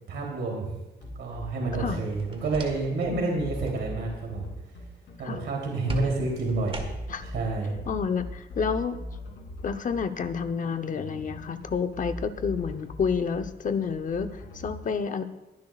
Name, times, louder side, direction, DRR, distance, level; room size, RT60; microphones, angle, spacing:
voice 1, 0.1-0.8 1.2-4.5 5.2-6.8 7.2-7.7, right 3 dB, 80° right, -1 dB, 3.2 m, -29 dB
sound 1, 1.0-14.7, left 1 dB, 75° left, 3.2 m, -40 dB
sound 2, 2.1-3.1 3.4-3.8 5.9-7.3, right 2 dB, 30° right, 1.6 m, -36 dB
voice 2, 3.1-3.4 5.2-5.4 7.1-7.2 7.9-9.0 9.6-15.2, left 6 dB, 45° left, 9 dB, 0.8 m, -29 dB
21.5 x 10.5 x 2.4 m, 1.0 s
cardioid pair, 130°, 19 cm